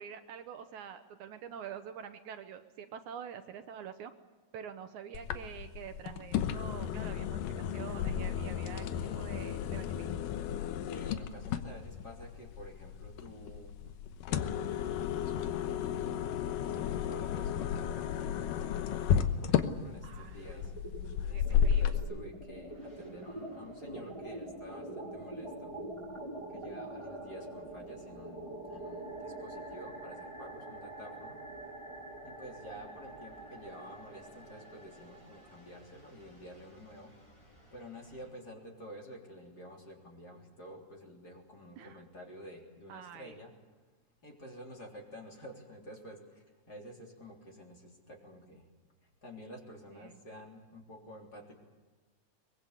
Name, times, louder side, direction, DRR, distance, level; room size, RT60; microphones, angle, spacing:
voice 1, 0.0-4.1 4.5-8.9 9.2-10.1 13.8-13.9 20.0-20.5 21.3-22.0 41.8-42.0 42.9-43.3 49.9-50.1, right 8 dB, 75° right, 8 dB, 2.4 m, -46 dB
sound 1, 5.1-22.0, left 9 dB, 90° left, 2.7 m, -33 dB
voice 2, 8.9-9.3 10.9-13.7 14.3-20.7 21.2-25.7 26.5-31.4 32.2-37.1 37.7-43.5 44.2-48.7 49.2-51.6, equal, 30° left, 1 dB, 3.8 m, -50 dB
sound 2, 19.2-20.0 20.2-38.3, right 1 dB, 10° left, 5.0 m, -46 dB
23.0 x 21.5 x 8.3 m, 1.3 s
omnidirectional pair, 3.7 m